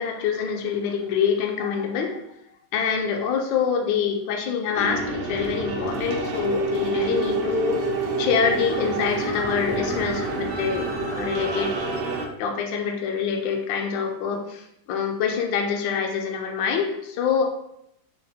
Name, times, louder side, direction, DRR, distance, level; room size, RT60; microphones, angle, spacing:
voice 1, 0.0-2.2 2.7-7.9 8.2-11.8 12.4-17.4, left 6 dB, 75° left, 3 dB, 1.2 m, -25 dB
sound 1, 4.8-12.3, right 2 dB, 80° right, 1.4 m, -27 dB
5.1 x 2.0 x 4.2 m, 0.77 s
omnidirectional pair, 2.2 m